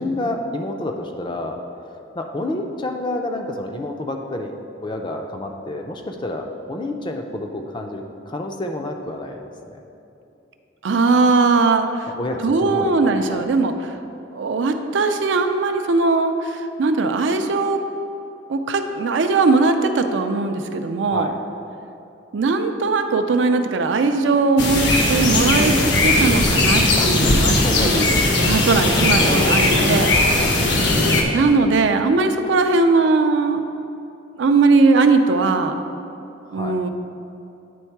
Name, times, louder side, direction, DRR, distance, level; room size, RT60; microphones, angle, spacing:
voice 1, 0.0-1.6 1.9-4.6 4.8-9.8 12.1-12.9 13.3-13.4 21.1-21.3 27.0-28.1 29.1-29.6 30.4-30.7 36.4-36.8, left 2 dB, 25° left, 3 dB, 0.4 m, -29 dB
voice 2, 10.8-12.1 12.4-14.0 14.3-17.8 18.5-21.3 22.3-30.1 30.7-30.8 31.3-33.6 34.4-35.8 36.5-36.9, right 3 dB, 70° right, 7 dB, 0.4 m, -19 dB
sound 1, 24.6-31.2, left 2 dB, 60° left, 0.8 m, -18 dB
9.3 x 3.6 x 4.5 m, 2.8 s
head